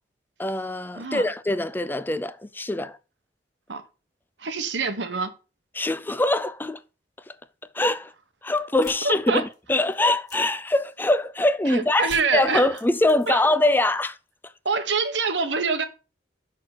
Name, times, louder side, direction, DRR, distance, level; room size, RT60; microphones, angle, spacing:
voice 1, 0.4-3.0 5.7-6.8 7.7-8.1 8.4-14.2, left 2 dB, 10° left, 0.4 m, -23 dB
voice 2, 0.9-1.2 3.7-3.8 4.4-5.3 9.0-9.4 11.7-12.7 13.3-13.4 14.6-15.9, right 4 dB, 80° right, 1.3 m, -25 dB
sound 1, 8.7-11.4 12.0-13.6 13.9-14.4, left 3 dB, 40° left, 3.2 m, -47 dB
6.7 x 6.4 x 5.9 m
head